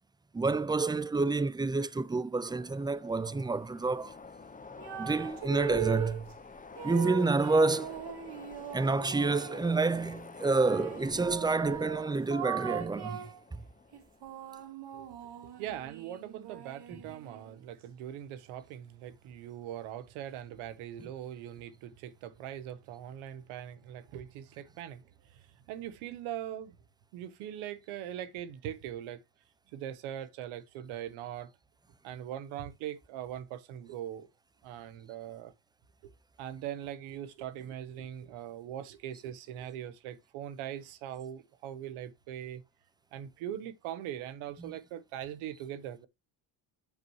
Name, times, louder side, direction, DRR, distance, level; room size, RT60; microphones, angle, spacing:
voice 1, 0.3-4.1 5.0-6.3 6.8-8.0 8.7-13.2 13.5-13.6 44.6-44.7, right 3 dB, 10° right, 0.4 m, -29 dB
Train, 2.5-14.7, left 4 dB, 15° left, 1.1 m, -49 dB
sound 1, 4.8-6.2 6.8-9.7 10.5-13.4 13.9-17.6, right 9 dB, 55° right, 1.9 m, -40 dB
voice 2, 15.4-26.7 27.1-29.2 29.7-31.5 32.0-34.3 34.6-35.5 36.0-36.1 36.4-42.6 43.1-46.1, right 11 dB, 85° right, 1.3 m, -41 dB
8.8 x 6.8 x 3.1 m
cardioid pair, 85°, 47 cm